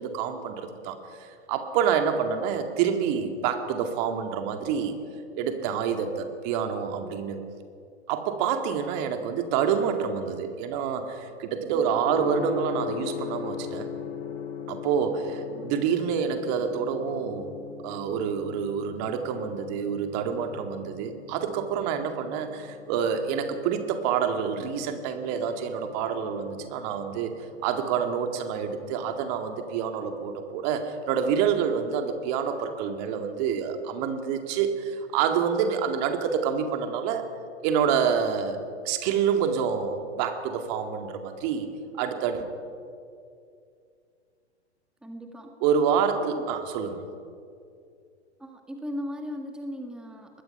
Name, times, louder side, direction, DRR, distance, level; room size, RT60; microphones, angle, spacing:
voice 1, 0.0-4.9 5.3-7.4 8.1-14.0 14.7-17.5 17.8-27.3 27.6-37.3 37.6-38.6 38.8-41.7 41.9-42.5 45.6-47.0, right 7 dB, 40° right, 6 dB, 2.3 m, -27 dB
Gong, 12.0-29.9, left 7 dB, 30° left, 2.1 m, -40 dB
voice 2, 15.2-15.7 45.0-45.5 46.2-46.5 48.4-50.4, equal, ahead, 4 dB, 1.5 m, -38 dB
23.5 x 20.5 x 5.8 m, 2.4 s
figure-of-eight pair, 105°, 34 cm